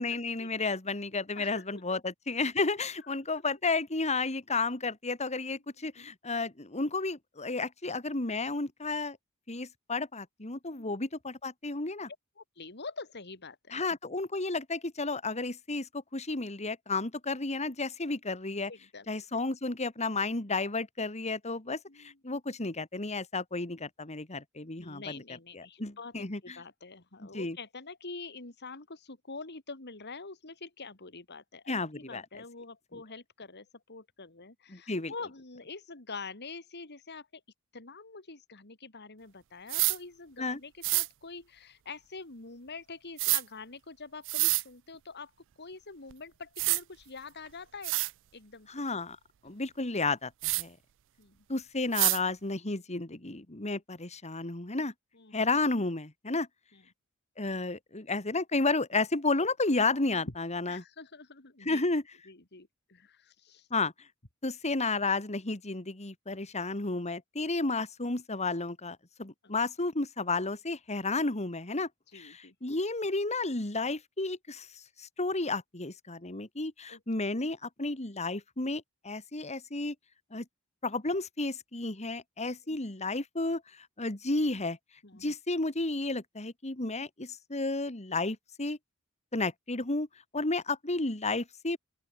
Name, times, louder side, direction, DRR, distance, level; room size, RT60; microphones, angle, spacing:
voice 1, 0.0-9.2 9.5-12.1 13.7-18.7 19.1-25.2 25.5-26.6 27.2-27.6 31.7-32.4 32.9-33.0 34.7-35.1 40.4-40.6 48.7-49.2 49.4-50.8 51.5-54.9 55.3-56.5 57.4-60.8 61.6-62.0 63.7-63.9 64.4-71.9 72.1-74.7 75.0-79.9 80.3-80.5 80.8-84.8 85.2-88.8 89.3-90.1 90.3-91.8, left 3 dB, 30° left, 2.3 m, -32 dB
voice 2, 1.4-2.0 6.0-6.1 10.7-11.0 12.4-13.8 18.7-19.1 21.9-22.1 24.8-26.1 26.4-37.3 37.7-45.3 45.6-47.9 48.3-48.7 49.4-49.6 51.2-51.4 55.2-55.4 56.7-56.8 60.3-60.4 60.7-61.8 62.3-63.7 69.4-69.5 72.1-72.5 76.9-77.0 82.7-82.8 85.0-85.3, left 4 dB, 55° left, 2.9 m, -46 dB
sound 1, 39.7-40.0 40.8-41.1 43.2-43.4 44.2-44.6 46.1-46.2 46.6-46.8 47.5-47.6 47.8-48.1 50.4-50.6 51.9-52.2, right 22 dB, 60° right, 0.4 m, -27 dB
open air
head